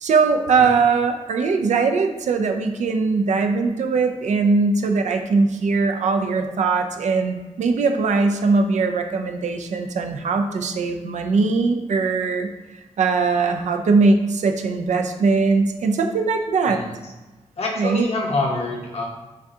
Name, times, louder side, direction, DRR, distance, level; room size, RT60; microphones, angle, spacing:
voice 1, 0.0-12.5 13.0-16.8 17.8-18.1, right 4 dB, 80° right, 5 dB, 0.4 m, -20 dB
voice 2, 17.6-19.1, left 2 dB, 60° left, -1 dB, 0.9 m, -26 dB
7.0 x 2.4 x 2.7 m, 1.1 s
cardioid pair, 65°, 12 cm